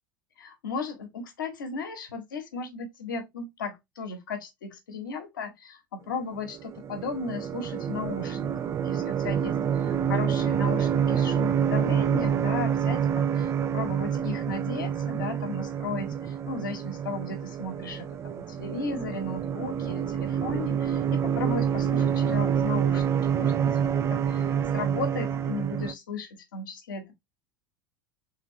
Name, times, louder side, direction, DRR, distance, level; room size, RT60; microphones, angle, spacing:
voice 1, 0.4-27.1, left 4 dB, 65° left, 1.4 m, -35 dB
sound 1, 6.5-25.9, right 8 dB, 25° right, 0.4 m, -27 dB
3.7 x 3.5 x 3.1 m
figure-of-eight pair, 80°, 11 cm